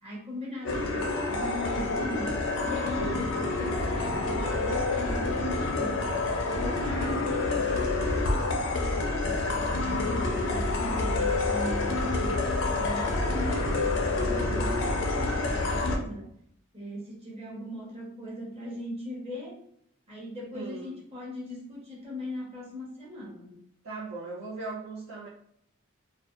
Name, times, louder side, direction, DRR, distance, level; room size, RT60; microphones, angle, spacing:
voice 1, 0.0-6.1 6.4-13.8 14.2-16.3 16.7-19.6 20.1-23.6, left 1 dB, 30° right, -4 dB, 0.9 m, -39 dB
sound 1, 0.6-16.0, left 2 dB, 65° left, 0.4 m, -28 dB
voice 2, 14.5-14.9 20.5-20.9 23.8-25.3, right 3 dB, 90° right, -7 dB, 0.7 m, -38 dB
2.6 x 2.2 x 2.3 m, 0.68 s
head